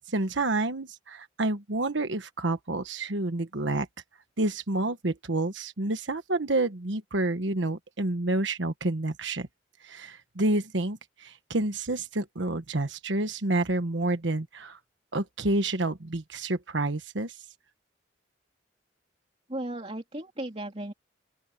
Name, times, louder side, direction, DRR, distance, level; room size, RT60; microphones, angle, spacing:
voice 1, 0.0-3.9 4.4-9.5 9.8-14.8 15.1-17.4, right 2 dB, 80° right, 1.3 m, -29 dB
voice 2, 19.5-20.9, right 1 dB, 30° right, 3.1 m, -35 dB
open air
head